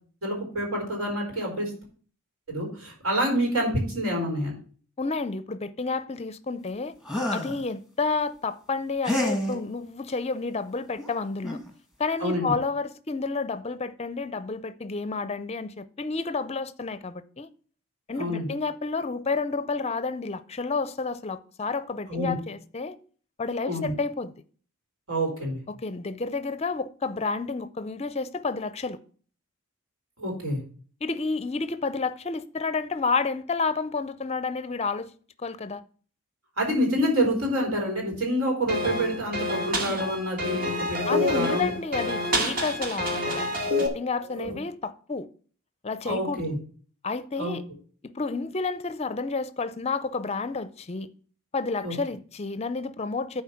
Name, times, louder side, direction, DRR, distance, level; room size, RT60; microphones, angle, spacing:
voice 1, 0.2-1.7 2.5-4.5 12.2-12.5 18.2-18.5 22.1-22.3 23.7-23.9 25.1-25.6 30.2-30.6 36.6-41.7 44.2-44.5 46.0-46.6 47.4-47.6 51.8-51.9, equal, 75° right, 4.0 m, -27 dB
voice 2, 5.0-6.9 7.3-11.6 12.0-17.5 18.1-23.0 23.4-24.3 25.7-29.0 31.0-35.1 35.4-35.8 41.1-45.3 45.8-46.4 47.0-47.6 48.0-51.1 51.5-53.4, left 4 dB, 30° left, 0.5 m, -30 dB
sound 1, 7.0-7.6 9.0-9.6 11.0-11.1 11.4-11.7, left 1 dB, 5° right, 1.5 m, -28 dB
sound 2, 38.7-43.9, left 1 dB, 40° right, 1.7 m, -27 dB
11.0 x 4.5 x 5.7 m
head